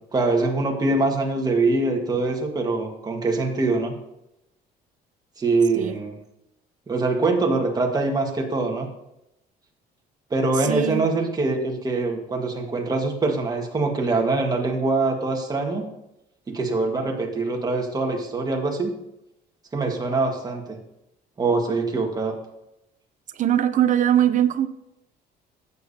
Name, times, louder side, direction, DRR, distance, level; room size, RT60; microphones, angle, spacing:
voice 1, 0.1-3.9 5.4-6.1 6.9-8.9 10.3-15.8 16.5-18.9 19.7-20.6 21.4-22.3, right 3 dB, 25° right, 1 dB, 1.7 m, -23 dB
voice 2, 10.6-11.1 23.3-24.7, right 10 dB, 50° right, 12 dB, 0.6 m, -21 dB
12.5 x 8.3 x 2.8 m, 0.86 s
cardioid pair, 110°, 17 cm